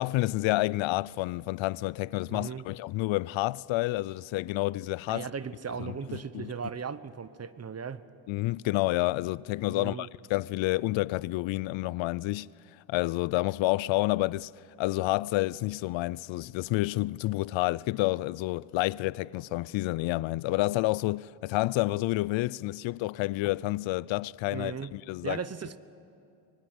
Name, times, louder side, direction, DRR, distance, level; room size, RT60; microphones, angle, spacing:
voice 1, 0.0-5.3 5.8-6.5 8.3-12.5 12.9-14.5 14.8-25.4, left 19 dB, 65° left, 0.6 m, -29 dB
voice 2, 2.3-2.6 5.1-8.0 9.7-10.1 24.5-24.9 25.2-25.8, right 6 dB, 30° right, 1.0 m, -37 dB
24.5 x 21.0 x 8.0 m
supercardioid pair, 80°, 50 cm